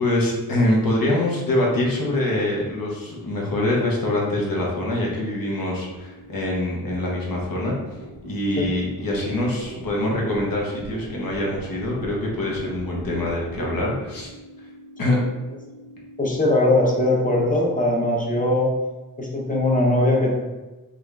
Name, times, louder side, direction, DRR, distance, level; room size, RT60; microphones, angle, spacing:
voice 1, 0.0-7.8 8.2-14.3 15.0-15.2, left 1 dB, 75° left, -3 dB, 0.9 m, -24 dB
sound 1, 0.8-17.6, right 1 dB, 35° right, 0.5 m, -42 dB
voice 2, 16.2-18.7 19.2-20.3, left 1 dB, 25° left, -2 dB, 0.7 m, -20 dB
3.5 x 2.4 x 3.2 m, 1.1 s
wide cardioid pair, 110°, 35 cm